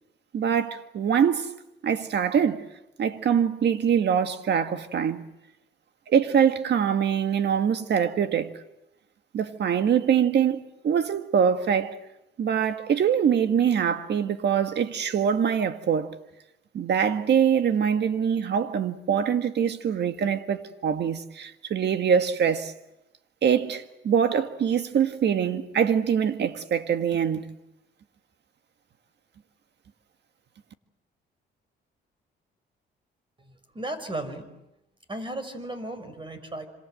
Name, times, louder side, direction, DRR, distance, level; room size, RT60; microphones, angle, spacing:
voice 1, 0.3-1.5 1.8-2.7 3.0-5.2 6.1-8.5 9.3-12.0 12.4-16.1 16.7-22.7 23.4-27.5, right 8 dB, 60° right, 1.8 m, -24 dB
voice 2, 33.4-34.5 35.1-36.7, right 1 dB, 25° right, 5.2 m, -35 dB
27.0 x 26.5 x 7.8 m
cardioid pair, 90°, 20 cm